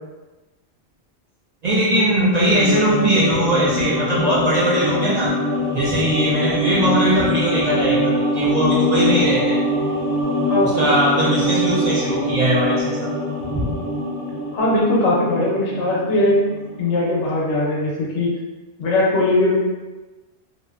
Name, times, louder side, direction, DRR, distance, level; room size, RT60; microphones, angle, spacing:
voice 1, 1.6-5.3 5.7-9.6 10.7-13.1 13.5-13.8, equal, 65° right, -6 dB, 0.4 m, -20 dB
sound 1, 2.5-17.1 17.4-17.5, equal, 15° left, 0.5 m, -23 dB
voice 2, 10.5-11.0 14.5-16.5 16.8-18.3 18.8-19.6, left 2 dB, 80° left, -4 dB, 1.0 m, -19 dB
2.8 x 2.1 x 2.3 m, 1.2 s
omnidirectional pair, 1.2 m